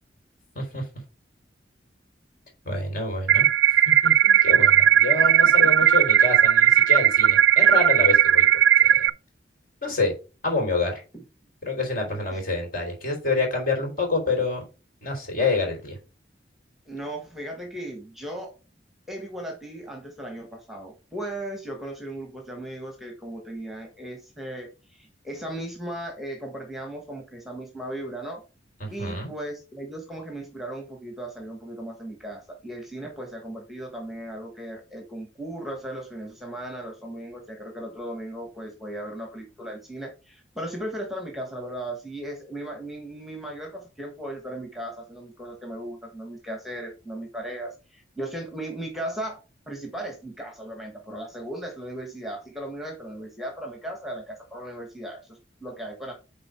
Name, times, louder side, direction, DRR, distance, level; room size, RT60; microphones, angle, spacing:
voice 1, 2.7-3.5 4.0-8.4 8.8-9.0 9.8-10.1 10.4-11.0 11.6-14.6 15.0-16.0 28.8-29.3, left 3 dB, 50° left, 3.6 m, -27 dB
sound 1, 3.3-9.1, right 10 dB, 70° right, 0.3 m, -17 dB
voice 2, 16.8-18.6 19.1-28.4 28.9-49.4 49.7-56.1, right 1 dB, ahead, 1.3 m, -37 dB
9.0 x 3.7 x 4.5 m
head